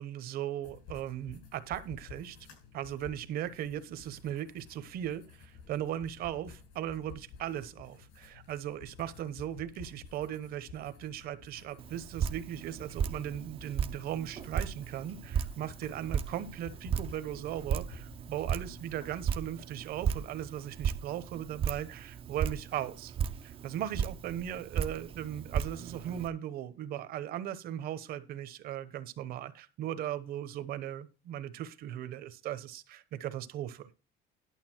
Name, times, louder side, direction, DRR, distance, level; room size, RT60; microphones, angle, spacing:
voice 1, 0.0-2.4 2.7-23.2 23.4-33.9, right 11 dB, 50° right, 1.0 m, -38 dB
sound 1, 0.6-18.9, left 5 dB, 80° left, 6.4 m, -53 dB
Drip, 11.8-26.3, right 8 dB, 30° right, 0.6 m, -36 dB
11.5 x 6.9 x 4.5 m
cardioid pair, 155°, 20 cm